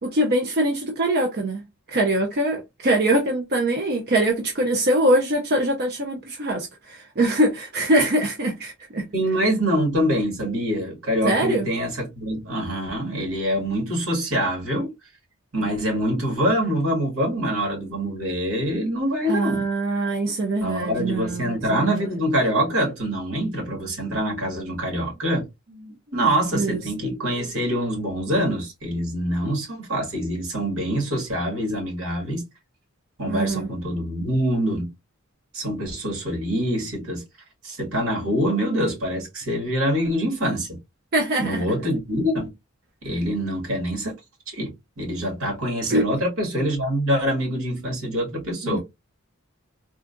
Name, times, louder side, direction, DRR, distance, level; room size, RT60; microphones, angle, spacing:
voice 1, 0.0-1.6 1.9-9.1 11.2-11.7 19.3-22.3 25.8-26.0 26.5-27.1 33.3-33.7 41.1-41.7 45.9-46.1 48.6-48.8, right 1 dB, 50° right, 0.6 m, -23 dB
voice 2, 9.1-14.9 15.5-19.6 20.6-25.5 26.1-32.4 33.2-34.9 35.5-37.2 37.6-40.8 41.4-42.5 43.0-44.1 44.5-44.7 45.0-48.8, equal, 80° right, 1.9 m, -25 dB
3.7 x 2.3 x 2.4 m
head